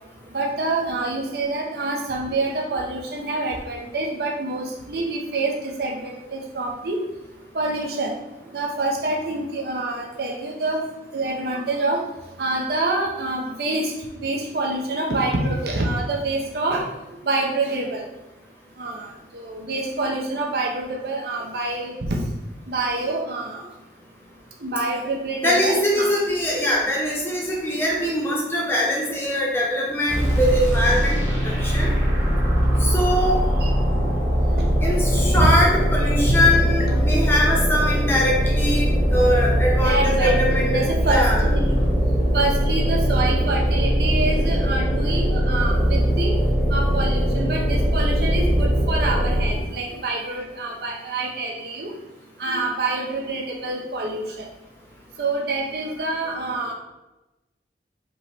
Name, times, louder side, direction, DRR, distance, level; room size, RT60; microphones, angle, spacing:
voice 1, 0.3-7.0 7.5-8.1 8.5-10.8 11.1-12.0 12.4-13.9 14.2-16.9 17.2-18.1 18.8-19.1 19.3-22.1 22.7-23.7 24.6-26.1 27.7-27.8 29.7-30.4 32.1-32.3 32.7-32.8 33.1-33.2 33.6-33.7 35.3-35.6 36.3-37.0 39.8-41.8 42.3-46.3 46.7-51.9 52.4-54.5 55.2-56.7, right 2 dB, 60° right, 0 dB, 0.6 m, -26 dB
voice 2, 25.4-31.9 32.8-33.4 34.8-38.9 39.1-41.4, left 1 dB, 15° left, -2 dB, 0.8 m, -22 dB
sound 1, 30.1-49.7, equal, 45° right, 1.4 m, -21 dB
5.2 x 2.9 x 3.4 m, 1.0 s
head